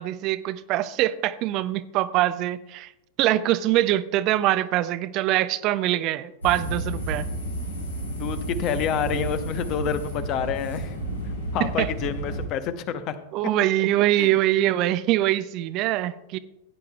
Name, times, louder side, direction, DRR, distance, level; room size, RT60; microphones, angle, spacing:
voice 1, 0.0-2.9 3.2-7.3 11.6-11.9 13.3-16.4, right 14 dB, 40° right, 14 dB, 0.4 m, -23 dB
sound 1, 6.4-12.5, right 1 dB, 80° left, 2.7 m, -31 dB
voice 2, 8.2-10.9 11.2-13.2 14.2-14.4, left 8 dB, 40° left, 11 dB, 0.8 m, -28 dB
16.0 x 9.5 x 2.3 m, 0.89 s
figure-of-eight pair, 90°, 0 cm